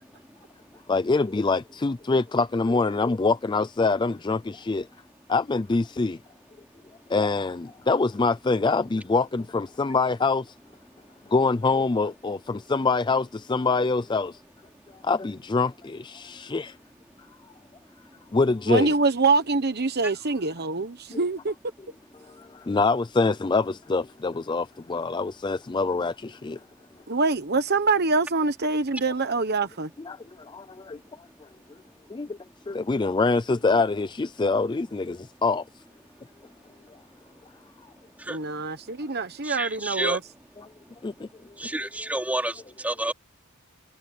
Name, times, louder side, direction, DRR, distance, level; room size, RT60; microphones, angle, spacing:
voice 1, 0.9-4.9 5.3-6.2 7.1-10.5 11.3-14.4 15.0-16.8 18.3-18.9 21.1-21.2 22.2-26.6 30.0-31.0 31.4-31.5 32.1-32.4 32.7-35.6 40.6-40.7 41.0-41.3, left 3 dB, 20° left, 0.4 m, -25 dB
voice 2, 18.7-21.5 27.1-29.9 38.3-40.2, right 3 dB, 45° right, 1.1 m, -25 dB
voice 3, 39.4-40.2 41.6-42.5 42.8-43.1, right 1 dB, 5° right, 3.3 m, -29 dB
head